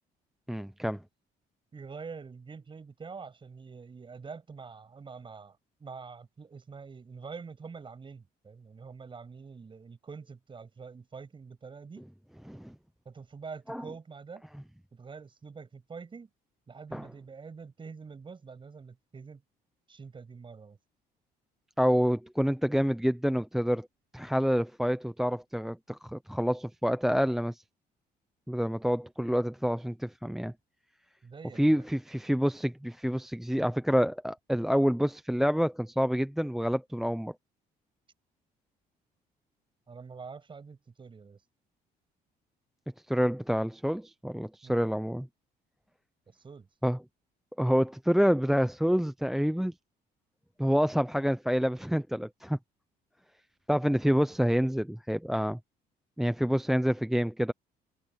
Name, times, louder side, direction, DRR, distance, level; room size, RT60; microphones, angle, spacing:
voice 1, 0.5-1.0 12.5-12.7 13.7-13.8 16.9-17.1 21.8-23.9 24.1-27.6 28.5-30.5 31.6-37.3 43.1-45.3 46.8-47.0 47.6-49.7 50.6-52.6 53.7-55.6 56.2-57.5, equal, ahead, 0.7 m, -27 dB
voice 2, 1.7-12.1 13.0-14.4 14.9-16.3 16.7-19.4 19.9-20.8 31.2-31.8 39.9-41.4 44.6-44.9 46.3-46.7, right 5 dB, 30° right, 7.6 m, -46 dB
cardioid pair, 110°, 17 cm